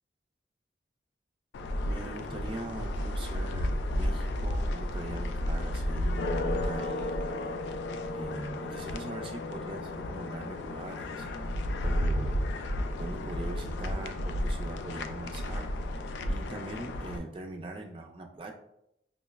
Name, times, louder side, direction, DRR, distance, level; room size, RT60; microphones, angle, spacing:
sound 1, 1.5-17.2, left 1 dB, 75° left, 0.3 m, -32 dB
voice 1, 1.8-7.2 8.1-11.3 11.8-12.5 13.0-15.7 16.3-18.5, right 2 dB, 30° right, 1 dB, 0.4 m, -41 dB
5.5 x 2.0 x 2.3 m, 0.80 s
head